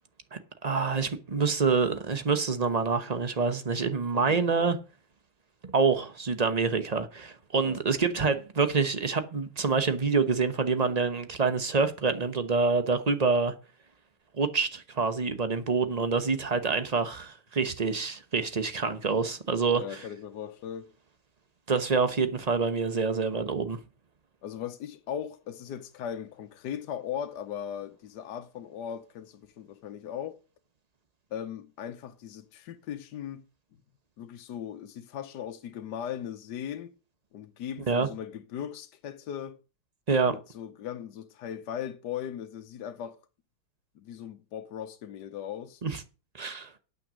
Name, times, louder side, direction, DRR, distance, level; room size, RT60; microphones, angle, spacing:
voice 1, 0.3-4.8 5.7-13.5 14.4-20.0 21.7-23.8 37.9-38.1 40.1-40.3 45.8-46.0 46.3-46.7, right 4 dB, 45° right, 0.5 m, -27 dB
voice 2, 19.7-20.9 24.4-30.4 31.3-33.4 34.2-37.0 37.3-39.6 40.3-43.2 43.9-45.8, left 9 dB, 65° left, 1.3 m, -38 dB
9.1 x 8.8 x 6.3 m
omnidirectional pair, 2.3 m